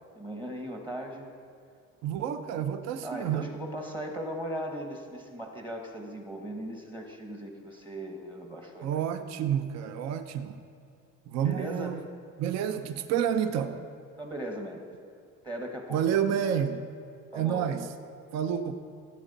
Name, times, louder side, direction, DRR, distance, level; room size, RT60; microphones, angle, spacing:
voice 1, 0.2-1.3 3.0-9.0 11.4-11.9 14.2-14.8 15.4-16.0 17.3-17.7, equal, 15° right, 3 dB, 1.0 m, -38 dB
voice 2, 2.0-3.5 8.8-10.6 11.3-12.0 12.4-13.8 15.9-16.9 17.3-17.9 18.3-18.7, right 9 dB, 55° right, 9 dB, 0.7 m, -29 dB
16.0 x 8.2 x 4.0 m, 2.3 s
cardioid pair, 150°, 32 cm